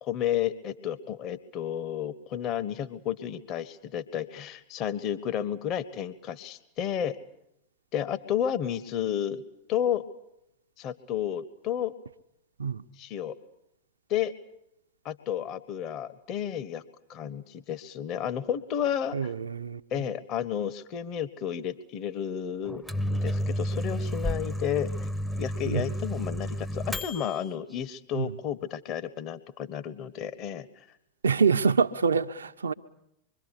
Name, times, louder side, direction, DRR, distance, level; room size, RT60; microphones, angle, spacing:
voice 1, 0.0-7.2 7.9-9.4 9.7-10.1 10.8-11.9 13.0-13.4 14.1-14.3 15.0-16.8 17.1-19.3 19.9-25.1 25.4-30.7, left 9 dB, 35° left, 1.3 m, -32 dB
voice 2, 19.1-19.8 25.7-25.9 28.1-28.3 31.2-32.7, right 5 dB, 70° right, 0.9 m, -25 dB
Microwave oven, 22.6-27.5, equal, 5° left, 0.9 m, -31 dB
25.5 x 23.5 x 8.3 m
figure-of-eight pair, 90°, 0 cm